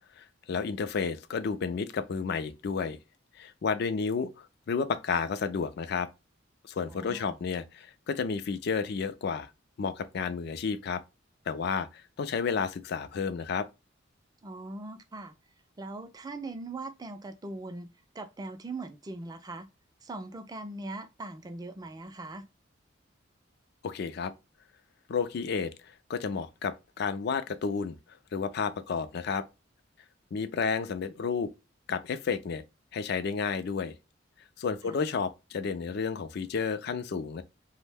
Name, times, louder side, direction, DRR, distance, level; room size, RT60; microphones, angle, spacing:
voice 1, 0.2-3.0 3.4-6.1 6.6-9.5 9.8-11.0 11.5-13.7 23.8-24.3 25.1-28.0 28.3-29.4 30.3-31.5 31.9-32.6 32.9-33.9 34.6-37.4, left 5 dB, 55° left, 0.4 m, -31 dB
voice 2, 6.9-7.4 14.4-15.3 15.8-19.6 20.0-22.4 34.8-35.0, right 2 dB, 20° right, 0.4 m, -40 dB
2.5 x 2.1 x 3.4 m
head